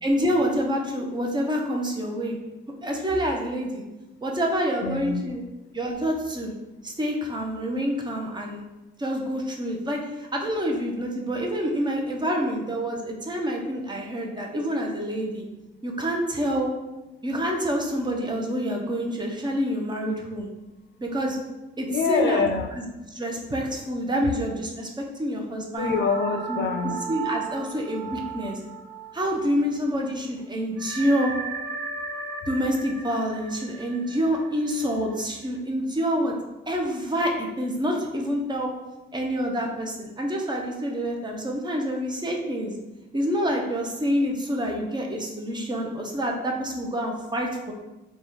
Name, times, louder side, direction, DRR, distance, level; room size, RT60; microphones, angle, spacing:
voice 1, 0.0-2.4 2.8-3.8 4.2-5.4 5.7-6.5 6.8-8.6 9.0-10.0 10.3-15.5 15.8-16.7 17.2-20.5 21.0-21.4 21.8-22.5 22.7-22.8 23.1-26.0 26.5-26.6 27.1-28.6 29.1-31.3 32.5-36.3 36.7-38.7 39.1-42.7 43.1-47.7, equal, 20° right, 1 dB, 0.7 m, -27 dB
voice 2, 4.8-5.2 21.9-22.7 25.8-27.0, left 5 dB, 60° left, 6 dB, 0.4 m, -25 dB
sound 1, 25.7-29.8 30.0-30.1 30.8-35.4, right 5 dB, 80° right, 0.7 m, -36 dB
3.4 x 2.3 x 4.2 m, 1.0 s
cardioid pair, 90°, 20 cm